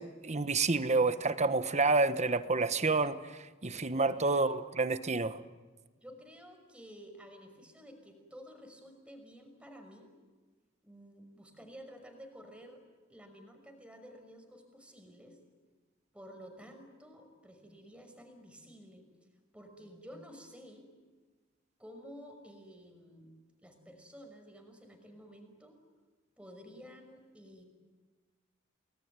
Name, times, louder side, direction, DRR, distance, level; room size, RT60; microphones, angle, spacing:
voice 1, 0.0-5.4, right 3 dB, 35° right, 12 dB, 1.2 m, -29 dB
voice 2, 4.0-4.5 6.0-10.1 10.8-12.8 13.1-15.4 16.1-19.1 19.5-20.9 21.8-23.3 23.6-25.8 26.4-27.6, equal, 5° right, 4 dB, 5.7 m, -52 dB
29.5 x 20.5 x 9.7 m, 1.3 s
head